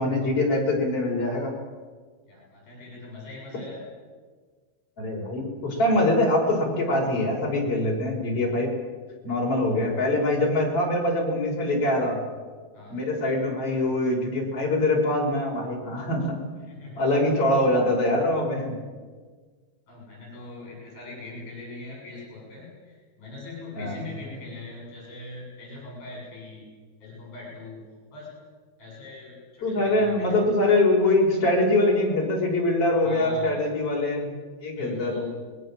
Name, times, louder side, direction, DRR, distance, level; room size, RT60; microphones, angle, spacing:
voice 1, 0.0-1.5 5.0-8.7 9.2-12.2 12.9-16.4 17.0-18.7 23.8-24.0 29.6-34.3 34.6-35.3, left 1 dB, 35° left, -1 dB, 6.5 m, -23 dB
voice 2, 2.3-3.8 12.7-13.0 16.7-17.0 19.9-26.7 27.0-27.8 28.1-28.3 28.8-30.4 33.0-33.7 34.7-35.3, left 2 dB, 60° left, -2 dB, 8.9 m, -41 dB
26.5 x 21.0 x 7.7 m, 1.5 s
omnidirectional pair, 4.8 m